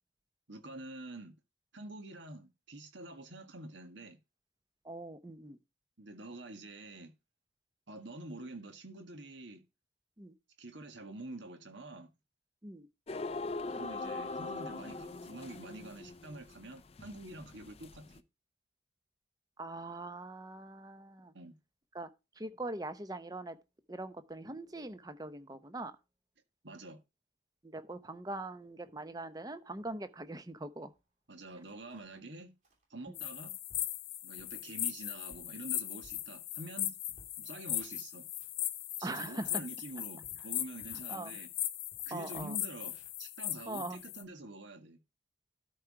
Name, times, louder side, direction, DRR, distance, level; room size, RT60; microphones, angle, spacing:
voice 1, 0.5-1.3 1.7-4.2 6.0-7.1 7.9-9.6 10.6-12.1 13.7-18.2 21.3-21.5 26.6-27.0 31.3-32.5 32.9-33.6 34.2-37.0 37.4-38.3 39.0-41.5 42.1-45.0, right 2 dB, 65° right, 1.6 m, -47 dB
voice 2, 4.8-5.6 10.2-10.3 12.6-12.9 19.6-21.3 21.9-22.1 22.4-23.6 23.9-25.9 27.6-30.9 33.1-33.2 39.0-39.6 41.1-41.4 42.1-42.6 43.7-44.0, right 2 dB, 20° right, 0.7 m, -42 dB
sound 1, 13.1-18.2, left 3 dB, 30° left, 0.5 m, -42 dB
sound 2, 31.0-31.1 31.4-32.2 32.6-32.8 33.3-33.4 33.7-34.0 34.4-34.7 35.1-36.8 37.1-38.6 39.0-41.2 41.5-41.7 41.9-44.1, equal, 40° right, 2.9 m, -62 dB
sound 3, 33.1-44.2, left 14 dB, 80° left, 0.8 m, -39 dB
12.5 x 4.6 x 4.7 m
head